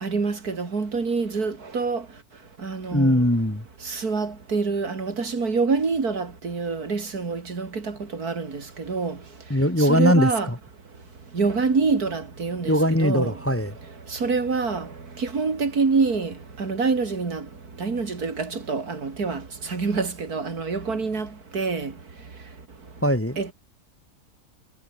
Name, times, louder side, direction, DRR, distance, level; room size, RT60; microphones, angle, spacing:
voice 1, 0.0-2.0 2.6-3.1 3.9-9.2 9.8-10.5 11.3-13.3 14.2-14.9 15.2-16.3 16.6-17.4 17.8-19.4 19.7-21.3 21.5-21.9 23.4-23.5, right 4 dB, 85° right, 3.4 m, -26 dB
voice 2, 2.9-3.6 9.5-10.6 12.6-13.7 23.0-23.4, equal, 10° left, 1.3 m, -21 dB
omnidirectional pair, 1.6 m